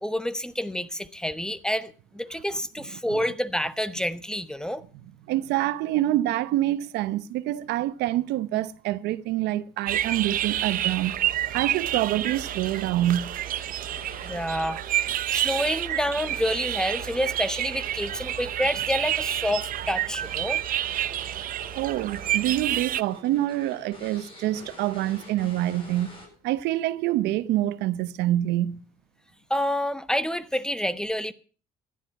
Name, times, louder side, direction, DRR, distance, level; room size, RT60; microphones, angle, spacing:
voice 1, 0.0-4.8 14.2-14.8 15.3-20.6 29.5-31.3, equal, 5° left, 1.0 m, -28 dB
voice 2, 5.3-11.2 11.5-13.3 21.7-26.2 26.4-28.8, right 14 dB, 85° right, 0.8 m, -26 dB
sound 1, 9.9-23.0, right 12 dB, 55° right, 0.6 m, -29 dB
sound 2, 10.6-26.6, left 2 dB, 30° left, 7.8 m, -48 dB
15.5 x 11.5 x 5.9 m
cardioid pair, 110°, 17 cm